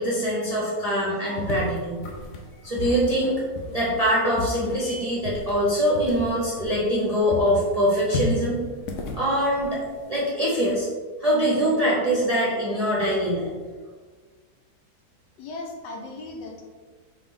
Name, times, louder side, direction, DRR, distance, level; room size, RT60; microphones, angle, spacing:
voice 1, 0.0-2.0 2.6-8.6 9.1-9.8 10.1-10.9 11.2-13.5, equal, 30° right, -8 dB, 0.7 m, -23 dB
sound 1, 1.4-7.0 7.3-10.2, left 3 dB, 65° left, 0.9 m, -33 dB
voice 2, 15.4-16.6, left 2 dB, 85° left, 1 dB, 1.4 m, -37 dB
5.2 x 2.7 x 3.6 m, 1.5 s
omnidirectional pair, 1.9 m